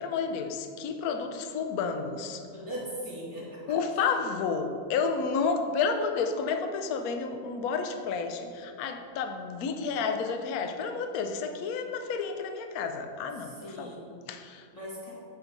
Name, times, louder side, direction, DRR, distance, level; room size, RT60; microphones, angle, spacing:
voice 1, 0.0-2.5 3.7-14.7, left 5 dB, 75° left, 6 dB, 0.8 m, -31 dB
voice 2, 2.5-3.6 13.6-14.0 14.7-15.1, equal, 15° left, -9 dB, 1.9 m, -38 dB
9.2 x 4.5 x 5.3 m, 2.4 s
omnidirectional pair, 2.3 m